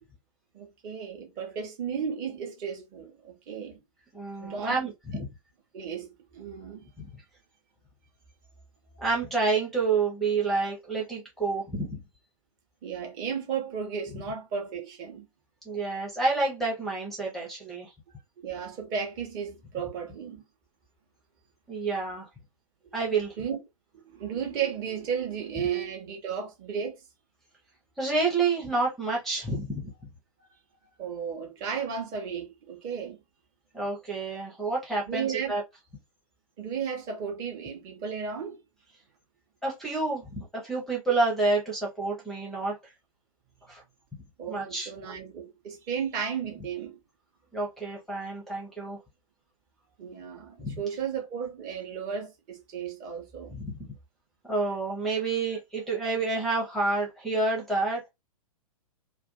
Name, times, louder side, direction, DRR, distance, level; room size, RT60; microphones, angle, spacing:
voice 1, 0.5-3.8 4.4-4.8 5.1-5.2 5.7-6.9 12.8-15.2 18.4-20.4 23.4-23.6 23.9-27.0 30.4-30.5 31.0-33.2 35.1-35.5 36.6-38.6 44.4-47.0 50.0-53.6, right 7 dB, 30° right, 0.8 m, -34 dB
voice 2, 4.1-4.9 5.2-5.3 9.0-12.0 15.7-17.9 21.7-22.3 22.9-23.3 28.0-29.8 33.7-35.6 39.6-42.7 43.7-43.8 44.5-44.9 47.5-49.0 50.6-50.8 53.5-53.8 54.5-58.1, right 3 dB, ahead, 0.6 m, -28 dB
2.5 x 2.2 x 2.5 m
figure-of-eight pair, 115°, 20 cm